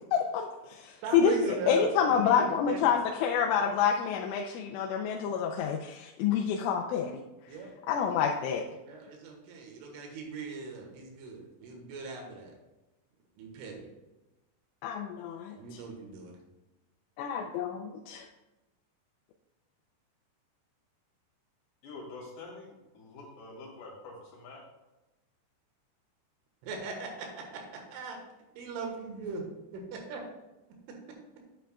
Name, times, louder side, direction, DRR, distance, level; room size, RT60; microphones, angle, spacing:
voice 1, 0.1-7.2 7.9-8.6 14.8-15.8 17.2-18.3, left 7 dB, 90° left, 1 dB, 3.2 m, -28 dB
voice 2, 1.0-2.9 7.5-7.7 8.8-12.5 13.4-13.9 15.6-16.3 26.6-27.3 27.9-28.2 28.6-29.4 29.9-30.2, right 4 dB, 85° right, 1 dB, 3.9 m, -40 dB
voice 3, 21.8-24.6, left 3 dB, 70° left, -3 dB, 4.3 m, -46 dB
10.0 x 8.9 x 2.3 m, 1.0 s
omnidirectional pair, 5.5 m